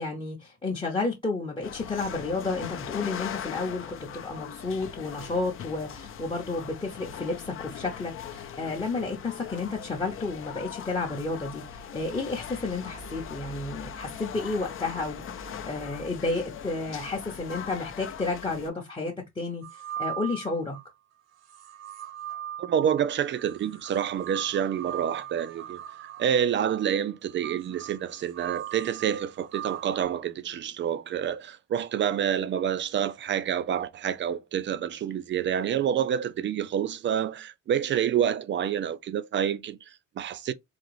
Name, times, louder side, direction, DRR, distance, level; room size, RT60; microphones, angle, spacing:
voice 1, 0.0-20.8, left 3 dB, 15° left, 0.8 m, -31 dB
sound 1, 1.6-18.7, left 8 dB, 45° left, 0.6 m, -40 dB
sound 2, 19.6-20.9 21.4-30.0, right 11 dB, 55° right, 0.8 m, -40 dB
voice 2, 22.6-40.5, right 9 dB, 40° right, 0.4 m, -28 dB
3.9 x 2.9 x 3.0 m
cardioid pair, 145°, 30 cm